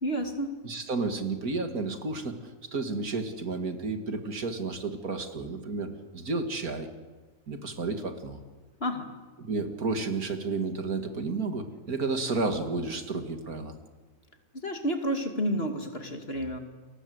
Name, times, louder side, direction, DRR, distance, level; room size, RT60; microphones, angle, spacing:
voice 1, 0.0-0.6 8.8-9.1 14.6-16.6, equal, 40° left, 5 dB, 2.8 m, -30 dB
voice 2, 0.6-2.4 2.7-5.9 6.1-6.9 7.5-8.4 9.4-13.7, right 3 dB, 75° right, 7 dB, 2.8 m, -31 dB
30.0 x 24.0 x 8.1 m, 1.3 s
omnidirectional pair, 1.6 m